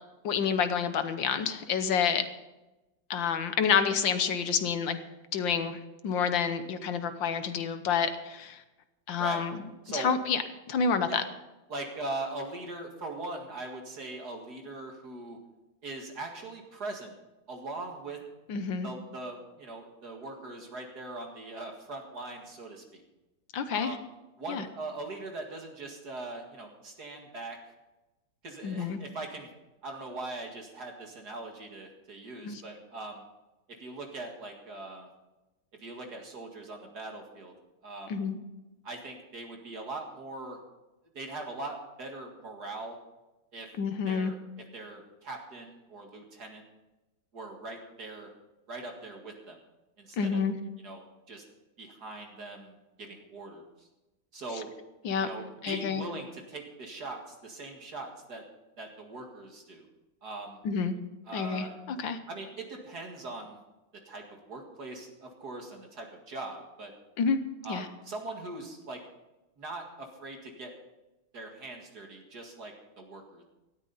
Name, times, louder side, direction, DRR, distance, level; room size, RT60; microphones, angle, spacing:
voice 1, 0.2-2.3 3.1-5.0 5.3-8.6 9.1-9.5 9.9-10.4 10.7-11.2 18.5-18.9 23.5-24.0 24.5-24.6 28.6-29.0 32.4-32.6 38.1-38.4 43.8-44.3 50.2-50.6 55.0-55.3 55.6-56.0 60.7-60.9 61.3-62.2 67.2-67.4 67.7-67.9, left 6 dB, 75° left, 10 dB, 1.7 m, -28 dB
voice 2, 11.7-15.4 15.8-17.1 17.5-18.2 18.8-23.0 23.7-24.1 24.4-27.6 28.4-29.5 29.8-33.2 33.8-35.1 35.8-37.5 37.8-38.2 38.8-40.6 41.1-43.0 43.5-43.7 44.1-44.4 44.7-46.6 47.3-48.3 48.7-49.6 50.0-50.4 50.8-51.4 51.8-53.7 54.3-54.7 55.2-58.4 58.8-59.9 60.2-60.6 61.3-61.8 62.3-63.6 64.1-66.9 67.6-69.0 69.6-70.7 71.3-73.4, right 2 dB, 55° right, 2 dB, 2.4 m, -41 dB
18.0 x 13.5 x 4.1 m, 1.0 s
omnidirectional pair, 2.1 m